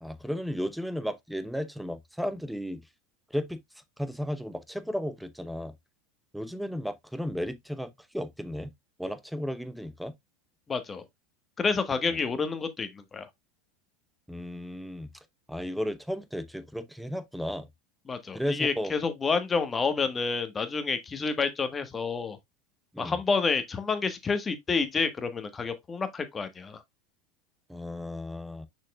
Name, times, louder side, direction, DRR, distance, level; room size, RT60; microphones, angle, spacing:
voice 1, 0.0-2.8 3.3-3.6 4.0-5.7 6.3-8.7 9.0-10.1 12.1-12.2 14.3-15.1 15.5-17.7 18.3-18.9 22.9-23.2 27.7-28.7, equal, ahead, 0.9 m, -34 dB
voice 2, 10.7-11.0 11.6-13.3 18.1-22.4 23.0-26.8, left 4 dB, 20° left, 1.4 m, -29 dB
6.4 x 6.2 x 2.4 m
hypercardioid pair, 90°, 0 cm